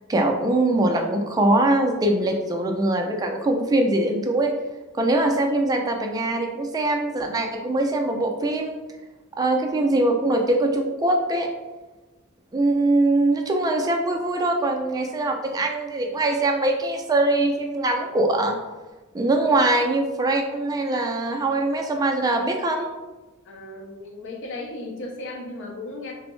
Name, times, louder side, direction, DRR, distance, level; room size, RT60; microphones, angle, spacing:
voice 1, 0.1-4.5 5.0-8.7 9.4-11.5 12.5-18.6 19.1-22.9, right 2 dB, 15° right, 2 dB, 0.3 m, -22 dB
voice 2, 23.5-26.1, left 2 dB, 60° left, 2 dB, 0.5 m, -35 dB
3.3 x 2.0 x 3.0 m, 1.2 s
head